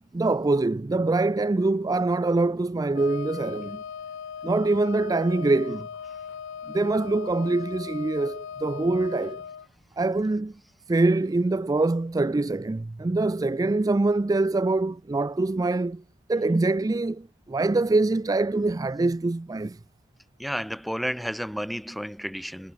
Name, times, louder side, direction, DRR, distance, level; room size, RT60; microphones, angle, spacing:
voice 1, 0.1-3.8 4.4-5.9 6.7-9.4 10.0-10.5 10.9-16.0 16.3-17.2 17.5-19.8, right 2 dB, 20° right, 0.3 m, -24 dB
Wind instrument woodwind instrument, 2.9-9.7, left 7 dB, 65° left, 0.4 m, -38 dB
voice 2, 20.4-22.7, equal, ahead, 0.9 m, -32 dB
head